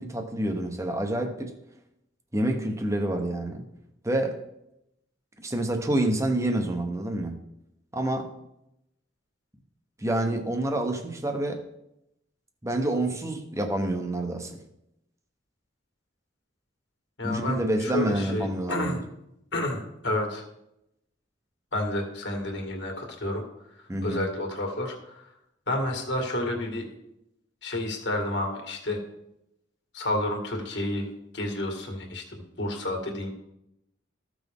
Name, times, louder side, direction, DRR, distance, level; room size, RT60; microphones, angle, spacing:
voice 1, 0.0-1.5 2.3-3.7 4.0-4.4 5.4-7.4 7.9-8.3 10.0-11.6 12.6-14.6 17.2-19.0 23.9-24.2, right 1 dB, 15° right, 5 dB, 1.0 m, -28 dB
voice 2, 17.2-19.0 19.5-20.4 21.7-23.4 24.0-25.3 25.7-26.9 27.6-29.0 29.9-31.1 31.3-33.3, left 1 dB, 65° left, 2 dB, 1.9 m, -30 dB
14.5 x 6.1 x 3.6 m, 0.83 s
head